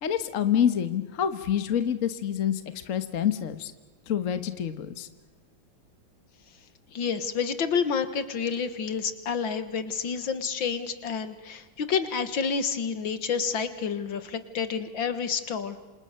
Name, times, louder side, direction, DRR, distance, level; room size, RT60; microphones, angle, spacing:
voice 1, 0.0-3.7 4.1-5.1, left 9 dB, 45° left, 10 dB, 1.5 m, -27 dB
voice 2, 6.9-15.8, left 6 dB, 70° left, 11 dB, 2.3 m, -29 dB
28.0 x 27.0 x 6.7 m, 1.2 s
omnidirectional pair, 2.2 m